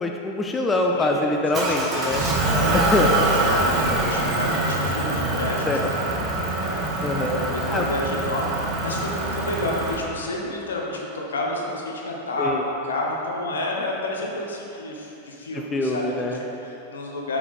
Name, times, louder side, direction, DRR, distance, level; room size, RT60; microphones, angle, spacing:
voice 1, 0.0-2.3 2.7-3.1 5.7-5.8 7.0-7.4 7.7-7.9 12.4-12.6 15.7-16.4, left 2 dB, 15° left, 2 dB, 0.5 m, -24 dB
voice 2, 0.8-1.2 1.9-3.0 3.4-6.1 6.6-17.4, left 1 dB, 65° left, -1 dB, 1.1 m, -30 dB
Motor vehicle (road) / Engine, 1.5-9.9, right 2 dB, 25° right, 1.2 m, -24 dB
8.3 x 5.0 x 4.2 m, 3.0 s
figure-of-eight pair, 90°, 0 cm